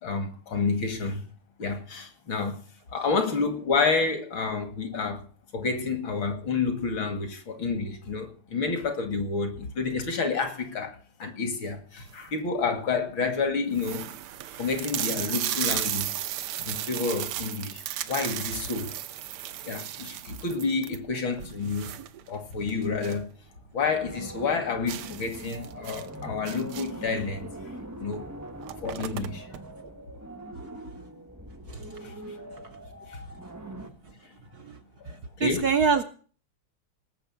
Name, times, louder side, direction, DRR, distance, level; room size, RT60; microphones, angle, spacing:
voice 1, 0.0-1.2 1.6-2.6 2.9-5.2 5.5-14.1 14.6-16.2 16.6-18.9 19.6-21.9 22.3-23.3 23.7-27.5 28.0-28.2 28.8-29.5 32.0-32.1 33.1-33.2 35.0-35.1 35.4-35.7, left 4 dB, 65° left, 3.0 m, -29 dB
sound 1, 11.9-12.4 13.0-13.1 13.3-13.4 13.7-23.3 23.6-23.7 24.1-24.2 24.9-27.1 28.1-28.2 28.5-29.6, right 12 dB, 80° right, 1.7 m, -35 dB
sound 2, 23.9-33.9, right 1 dB, 10° right, 0.8 m, -42 dB
voice 2, 35.1-36.0, right 5 dB, 60° right, 1.1 m, -25 dB
18.5 x 7.2 x 7.2 m
omnidirectional pair, 2.4 m